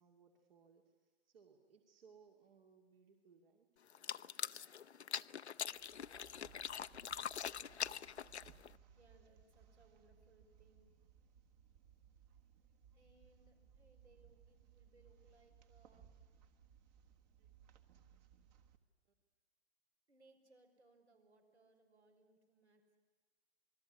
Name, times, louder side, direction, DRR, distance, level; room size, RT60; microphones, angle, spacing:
voice 1, 0.0-3.7, right 6 dB, 60° right, 2 dB, 2.5 m, -66 dB
sound 1, 3.9-8.8, left 8 dB, 80° left, 0.7 m, -43 dB
sound 2, 5.7-18.8, right 8 dB, 40° right, 1.7 m, -65 dB
voice 2, 8.9-10.9 12.9-16.1 20.1-23.0, right 2 dB, 80° right, 4 dB, 5.7 m, -69 dB
28.5 x 20.5 x 9.9 m, 1.3 s
figure-of-eight pair, 125°, 33 cm